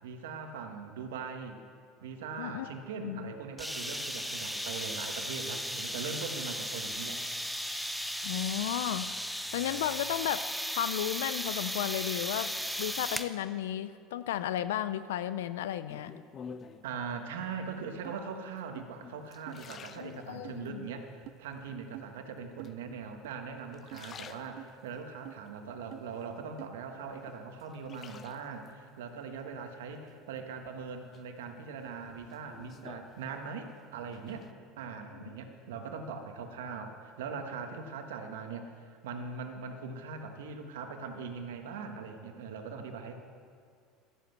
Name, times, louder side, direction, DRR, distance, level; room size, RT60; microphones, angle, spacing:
voice 1, 0.0-1.6 2.0-7.2 16.8-21.1 21.4-34.4 34.8-43.2, right 5 dB, 90° right, 5 dB, 1.4 m, -41 dB
voice 2, 2.4-3.3 8.2-9.1 9.5-10.5 10.8-12.5 12.8-16.1 20.0-20.9, left 11 dB, 90° left, 13 dB, 0.4 m, -34 dB
sound 1, 3.6-13.3, equal, ahead, 0.8 m, -36 dB
sound 2, 15.9-17.0 17.7-18.2 18.8-20.7 21.2-21.8 22.6-23.3 23.6-25.0 25.5-26.7 27.1-28.7 30.1-30.7 31.1-33.7 34.0-34.5, left 6 dB, 40° left, 0.7 m, -50 dB
sound 3, 18.0-18.2 18.8-18.9 19.5-19.6 20.4-20.6 21.3-21.4 21.9-22.1 22.6-22.7 23.2-23.3 23.9-24.1 24.6-24.7 25.2-25.4 25.9-26.1 26.6-26.7 27.3-27.4 27.9-28.0, right 18 dB, 65° right, 0.3 m, -45 dB
13.0 x 8.1 x 8.0 m, 2.3 s
supercardioid pair, 105°, 0 cm